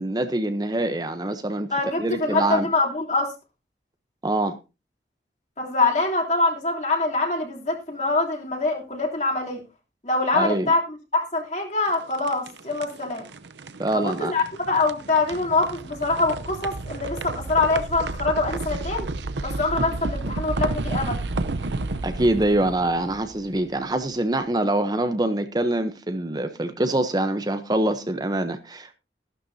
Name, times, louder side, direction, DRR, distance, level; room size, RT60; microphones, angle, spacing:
voice 1, 0.0-1.7 2.0-2.7 4.2-4.6 10.3-10.7 13.8-14.3 22.0-29.0, right 1 dB, 25° right, 0.8 m, -24 dB
voice 2, 1.7-3.3 5.6-9.6 10.0-10.8 11.1-13.2 14.0-19.1 19.4-21.2, left 3 dB, 40° left, 3.2 m, -24 dB
sound 1, 11.9-23.9, right 2 dB, 85° right, 0.8 m, -31 dB
14.5 x 12.0 x 2.7 m
head